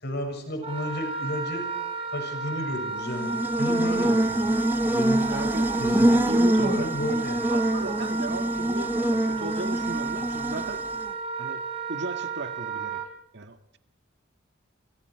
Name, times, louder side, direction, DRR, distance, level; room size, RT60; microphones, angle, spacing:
voice 1, 0.0-1.7 2.1-3.3 3.6-4.5 4.9-5.2 5.8-6.2 6.5-7.5, equal, 55° left, 4 dB, 6.5 m, -32 dB
Wind instrument woodwind instrument, 0.6-13.1, right 5 dB, 30° right, 4.4 m, -33 dB
Buzz, 3.0-11.1, right 1 dB, 10° right, 0.9 m, -25 dB
voice 2, 5.3-5.7 6.1-6.9 7.5-10.8 11.4-13.0 13.3-13.8, right 2 dB, 60° right, 7 dB, 1.7 m, -36 dB
27.5 x 26.0 x 4.7 m, 0.69 s
head